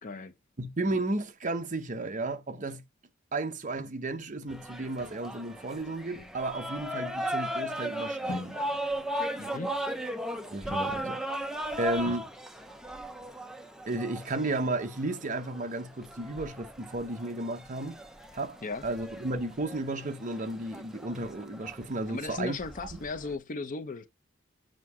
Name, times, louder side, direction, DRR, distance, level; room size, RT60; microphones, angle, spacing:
voice 1, 0.0-0.3 9.4-9.8 18.6-18.9 22.1-24.1, left 3 dB, 40° left, 0.6 m, -36 dB
voice 2, 0.6-2.8 3.3-8.6 8.8-8.9 10.5-11.5 11.8-12.3 13.9-18.0 18.3-22.6 22.9-23.0, right 2 dB, 40° right, 0.8 m, -33 dB
sound 1, 4.5-23.3, equal, 5° right, 0.6 m, -37 dB
sound 2, 6.2-7.5 8.3-13.3 13.6-13.7 14.0-14.1 14.4-14.5 14.7-15.0, left 3 dB, 60° left, 1.2 m, -47 dB
7.6 x 2.7 x 4.7 m
head